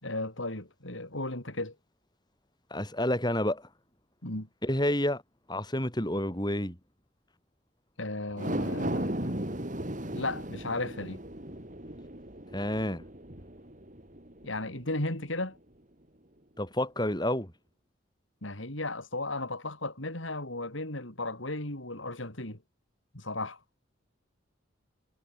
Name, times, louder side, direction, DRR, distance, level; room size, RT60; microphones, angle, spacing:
voice 1, 0.0-1.7 4.2-4.5 8.0-9.4 10.1-11.2 14.4-15.6 18.4-22.6 23.1-23.6, left 2 dB, 75° left, 5.5 m, -35 dB
voice 2, 2.7-3.6 4.6-5.2 5.5-6.8 12.5-13.0 16.6-17.5, left 1 dB, 20° left, 6.3 m, -29 dB
sound 1, 8.3-14.8 15.2-15.3, right 1 dB, 40° right, 3.6 m, -36 dB
head